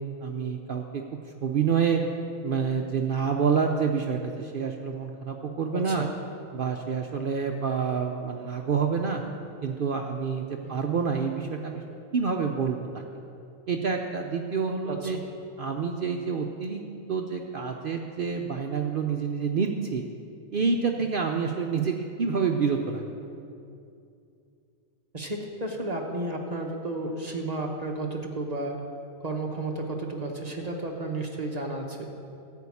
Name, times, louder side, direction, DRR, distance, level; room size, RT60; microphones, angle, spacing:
voice 1, 0.2-1.0 1.4-2.0 2.4-6.0 6.5-9.2 9.6-11.8 12.1-13.0 13.7-15.2 15.6-16.8 17.1-20.0 20.5-23.0, right 6 dB, 60° right, 3 dB, 0.5 m, -28 dB
voice 2, 5.9-6.2 10.6-10.8 14.9-15.2 25.1-28.8 29.2-32.1, right 2 dB, 35° right, 1 dB, 0.9 m, -32 dB
13.0 x 4.5 x 8.4 m, 2.5 s
omnidirectional pair, 1.5 m